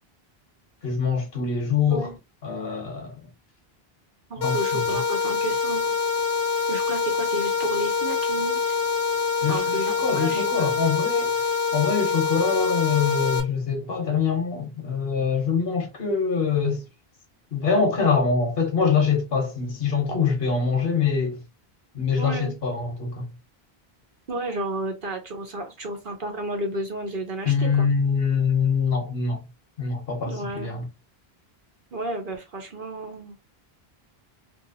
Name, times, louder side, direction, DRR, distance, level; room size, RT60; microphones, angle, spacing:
voice 1, 0.8-2.1 2.4-3.2 4.4-4.6 4.9-5.0 9.4-11.3 11.7-16.8 17.5-21.4 21.9-23.3 27.4-29.4 29.8-30.8, left 5 dB, 70° left, 1.3 m, -24 dB
voice 2, 4.3-5.9 6.7-8.7 9.5-10.8 22.2-22.5 24.3-27.9 30.3-30.7 31.9-33.4, right 1 dB, 60° right, 1.0 m, -32 dB
sound 1, 4.4-13.4, left 5 dB, 90° left, 1.1 m, -25 dB
3.0 x 2.9 x 2.7 m
omnidirectional pair, 1.0 m